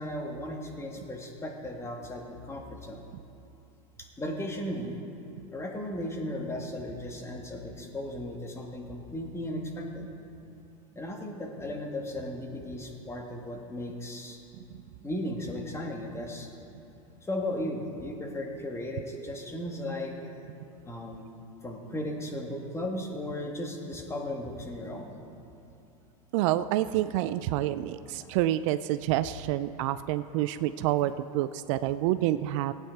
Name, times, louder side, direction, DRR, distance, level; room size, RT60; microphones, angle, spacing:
voice 1, 0.0-3.0 4.0-5.0 5.5-10.1 10.9-14.4 15.0-16.5 17.2-20.3 20.8-21.3 21.6-25.1, left 1 dB, 15° left, 1 dB, 1.7 m, -36 dB
voice 2, 26.3-32.7, right 14 dB, 60° right, 13 dB, 0.4 m, -28 dB
16.0 x 9.0 x 4.6 m, 2.7 s
hypercardioid pair, 105°, 18 cm